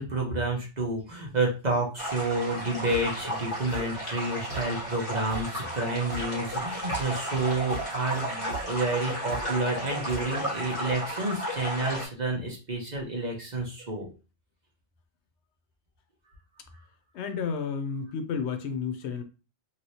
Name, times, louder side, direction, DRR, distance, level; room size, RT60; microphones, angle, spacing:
voice 1, 0.0-14.1, right 2 dB, 40° right, 1.0 m, -30 dB
sound 1, 2.0-12.1, right 1 dB, 25° left, 1.6 m, -34 dB
sound 2, 2.5-10.9, right 4 dB, 70° right, 1.4 m, -43 dB
voice 2, 17.1-19.2, left 6 dB, 75° left, 0.9 m, -31 dB
3.1 x 3.0 x 2.7 m
omnidirectional pair, 1.2 m